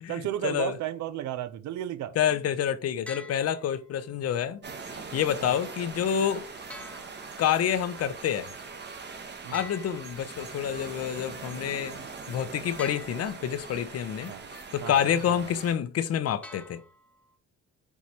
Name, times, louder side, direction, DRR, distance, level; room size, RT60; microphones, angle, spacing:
voice 1, 0.1-2.1 5.4-5.6 9.4-9.6 14.3-14.4 14.8-15.6, right 12 dB, 70° right, 0.5 m, -34 dB
voice 2, 2.2-4.6 5.1-6.4 7.4-8.5 9.5-12.0 12.3-16.8, left 9 dB, 55° left, 0.6 m, -28 dB
sound 1, 3.1-4.1 6.7-7.8 9.5-10.8 12.8-13.7 16.4-17.3, left 2 dB, 5° left, 0.8 m, -46 dB
sound 2, 4.6-15.7, right 4 dB, 35° right, 1.0 m, -42 dB
4.7 x 3.9 x 2.8 m
cardioid pair, 90°, 30 cm